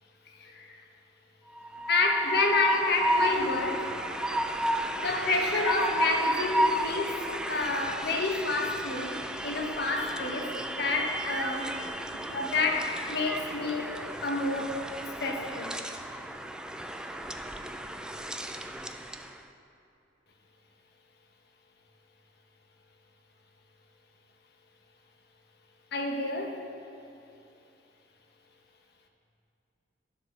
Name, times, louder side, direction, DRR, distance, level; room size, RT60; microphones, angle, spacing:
voice 1, 0.4-0.8 1.9-3.9 5.0-11.7 12.3-13.9 14.2-14.8 15.2-15.8 25.9-26.6, left 3 dB, 60° left, 2 dB, 1.2 m, -29 dB
Train, 1.5-19.3, right 1 dB, 5° right, 0.4 m, -32 dB
11.5 x 7.8 x 6.0 m, 2.7 s
head